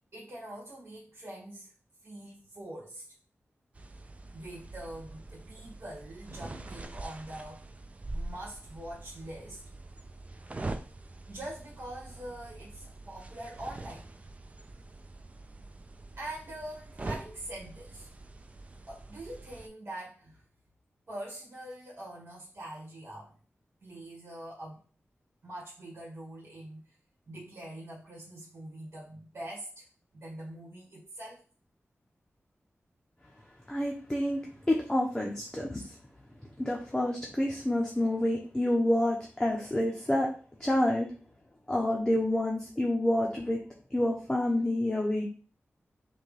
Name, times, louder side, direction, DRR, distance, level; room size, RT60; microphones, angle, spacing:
voice 1, 0.1-1.7 2.0-3.1 4.3-7.7 8.1-9.6 11.3-14.1 16.1-18.1 18.9-20.4 21.1-23.4 23.8-24.8 25.4-26.9 27.3-29.9 30.1-31.4, right 1 dB, 50° right, -5 dB, 1.6 m, -44 dB
sound 1, 3.7-19.7, right 2 dB, 30° right, 0.4 m, -44 dB
voice 2, 33.7-34.4 34.7-36.0 36.6-40.3 40.6-41.1 41.7-43.6 43.9-45.2, left 1 dB, 10° left, -1 dB, 0.7 m, -28 dB
6.1 x 2.3 x 3.3 m, 0.40 s
wide cardioid pair, 120°, 5 cm